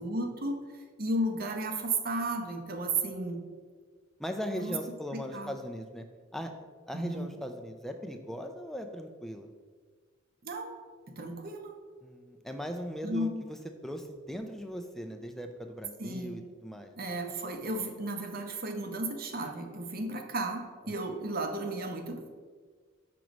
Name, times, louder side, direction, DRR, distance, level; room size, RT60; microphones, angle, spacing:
voice 1, 0.0-3.4 4.5-4.7 5.1-5.5 6.9-7.3 10.4-10.8 11.1-11.8 13.0-13.4 16.0-16.4 17.0-22.3, right 2 dB, 45° right, 4 dB, 0.7 m, -34 dB
voice 2, 4.2-6.1 6.3-6.5 6.9-9.5 12.0-13.6 13.8-17.1, equal, ahead, 5 dB, 0.3 m, -39 dB
6.0 x 3.0 x 5.1 m, 1.5 s
head